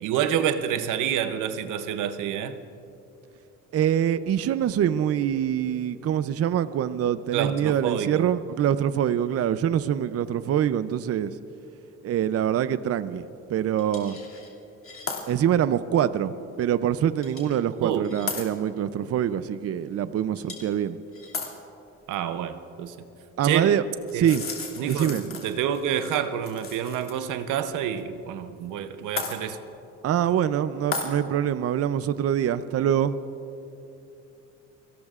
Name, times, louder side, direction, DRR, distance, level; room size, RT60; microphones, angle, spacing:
voice 1, 0.0-2.6 7.3-8.3 17.8-18.1 22.1-23.0 23.4-23.8 24.1-24.3 24.8-29.6, right 9 dB, 90° right, 10 dB, 0.8 m, -28 dB
voice 2, 3.7-11.4 12.0-14.2 15.3-21.0 23.4-23.8 24.1-24.4 24.8-25.3 30.0-33.1, right 10 dB, 50° right, 13 dB, 0.5 m, -24 dB
sound 1, 13.8-14.5 14.8-15.2 15.8-15.9 17.2-17.6 18.0-18.4 20.4-20.8 21.1-21.5 24.1-27.1 27.4-27.5 29.2-29.4 30.9-31.1, left 4 dB, 45° left, 2.6 m, -35 dB
29.0 x 18.0 x 2.5 m, 2.8 s
cardioid pair, 90°, 30 cm